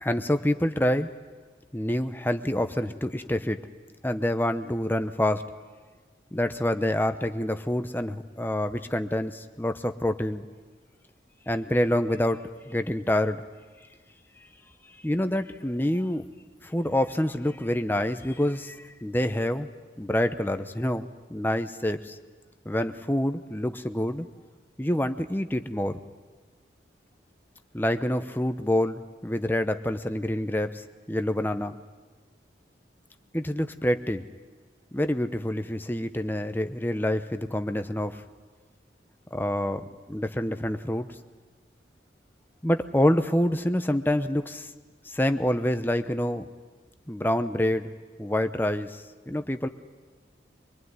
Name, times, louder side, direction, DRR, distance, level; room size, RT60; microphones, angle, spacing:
voice 1, 0.0-1.1 1.7-3.6 4.0-5.4 6.3-10.5 11.5-13.4 15.0-16.3 16.6-19.7 20.0-22.2 22.6-24.3 24.8-26.0 27.7-31.8 33.3-34.3 34.9-38.2 39.3-41.1 42.6-44.7 45.0-46.5 47.1-47.9 48.2-49.7, left 1 dB, 10° left, 9 dB, 0.8 m, -27 dB
24.5 x 21.0 x 9.6 m, 1.4 s
head